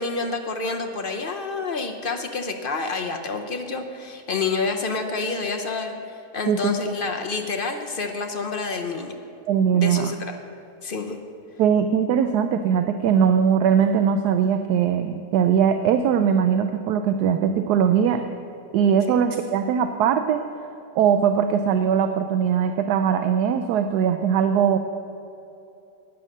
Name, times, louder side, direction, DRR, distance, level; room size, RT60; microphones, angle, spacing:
voice 1, 0.0-5.9 6.3-9.1 9.7-10.4 10.8-11.2 19.1-19.2, left 4 dB, 55° left, 4 dB, 0.6 m, -28 dB
voice 2, 9.5-10.1 11.6-18.2 18.7-20.4 21.0-24.8, right 8 dB, 75° right, 8 dB, 1.1 m, -20 dB
11.5 x 9.2 x 6.4 m, 2.8 s
omnidirectional pair, 1.9 m